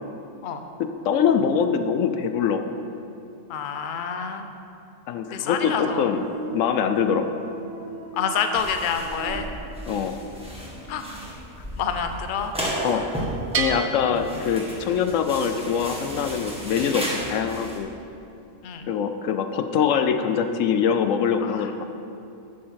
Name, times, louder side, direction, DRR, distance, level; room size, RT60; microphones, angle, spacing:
voice 1, 0.8-2.7 5.1-6.2 6.5-7.3 9.9-10.2 12.8-13.0 13.5-17.9 18.9-21.8, left 7 dB, 80° left, 7 dB, 0.9 m, -23 dB
voice 2, 3.5-4.5 5.3-6.1 8.1-9.5 10.9-11.3 11.8-12.5 12.9-13.0 18.6-18.9 21.4-21.7, left 6 dB, 50° left, 6 dB, 0.7 m, -28 dB
sound 1, 5.6-12.5 12.8-13.5, right 2 dB, 80° right, 1.2 m, -40 dB
sound 2, 8.5-17.8, right 1 dB, 5° right, 1.5 m, -34 dB
Bell, 13.5-15.3, right 6 dB, 50° right, 0.9 m, -31 dB
9.4 x 7.1 x 5.8 m, 2.7 s
omnidirectional pair, 1.3 m